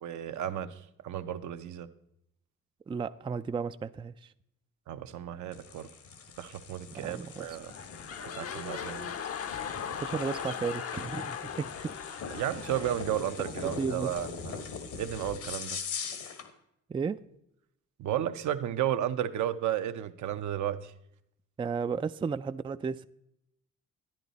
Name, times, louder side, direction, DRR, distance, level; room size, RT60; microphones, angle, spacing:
voice 1, 0.0-1.9 4.9-5.9 6.4-7.7 8.4-9.1 12.3-14.6 14.9-15.8 18.0-20.9, right 11 dB, 70° right, 0.8 m, -33 dB
voice 2, 2.9-4.3 6.9-7.5 10.0-11.9 13.6-14.1 16.9-17.2 21.6-23.1, right 5 dB, 15° right, 0.3 m, -34 dB
sound 1, 5.5-16.5, left 5 dB, 75° left, 1.7 m, -42 dB
sound 2, 7.3-13.9 14.4-14.5, left 8 dB, 50° left, 0.8 m, -39 dB
12.0 x 10.5 x 4.0 m
cardioid pair, 90°, 30 cm